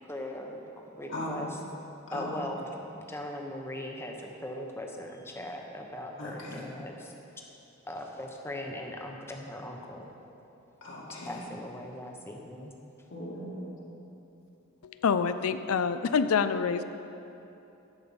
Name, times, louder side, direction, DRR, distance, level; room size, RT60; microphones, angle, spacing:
voice 1, 0.0-1.5 2.1-2.7 2.9-7.1 7.8-10.1 11.2-12.7, left 1 dB, 10° left, 1 dB, 0.8 m, -39 dB
voice 2, 1.1-1.7 2.1-2.4 6.2-6.7 10.8-11.4 13.1-13.7, left 1 dB, 60° left, -4 dB, 2.0 m, -38 dB
voice 3, 14.8-16.8, left 6 dB, 80° left, 11 dB, 0.4 m, -26 dB
11.0 x 5.1 x 7.2 m, 2.8 s
head